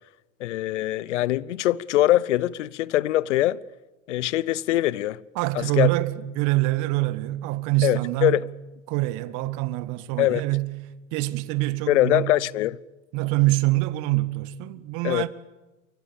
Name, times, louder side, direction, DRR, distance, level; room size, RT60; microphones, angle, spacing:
voice 1, 0.4-3.6 4.1-5.2 5.5-5.9 7.8-8.5 10.2-10.4 11.9-12.8 15.0-15.3, left 15 dB, 75° left, 0.9 m, -23 dB
voice 2, 5.4-8.4 8.9-10.7 11.1-12.3 13.1-15.3, right 20 dB, 55° right, 1.8 m, -25 dB
29.5 x 24.5 x 7.2 m
hypercardioid pair, 85°, 36 cm